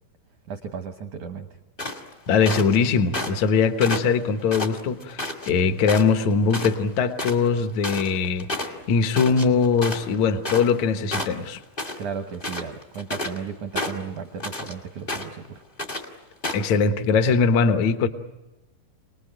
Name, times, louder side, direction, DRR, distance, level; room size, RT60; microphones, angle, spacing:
voice 1, 0.5-1.5 12.0-15.6, right 6 dB, 80° right, 6 dB, 1.7 m, -35 dB
sound 1, 1.8-2.8 3.1-3.5 3.8-5.5 5.9-6.2 6.5-6.7 7.0-10.8 11.1-12.0 12.3-13.4 13.7-14.7 15.1-15.5 15.8-16.0 16.4-16.7, left 2 dB, 60° left, 0.5 m, -31 dB
voice 2, 2.3-11.6 16.5-18.1, left 5 dB, 85° left, 8 dB, 1.6 m, -21 dB
28.5 x 20.0 x 9.0 m, 1.1 s
omnidirectional pair, 5.2 m